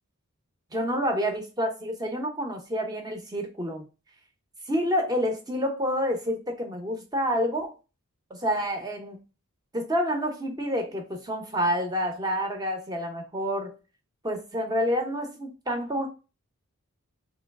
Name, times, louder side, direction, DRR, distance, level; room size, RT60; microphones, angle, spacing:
voice 1, 0.7-3.9 4.6-7.7 8.3-9.2 9.7-13.7 14.2-16.1, equal, 15° right, 0.7 m, -28 dB
3.0 x 3.0 x 3.5 m
head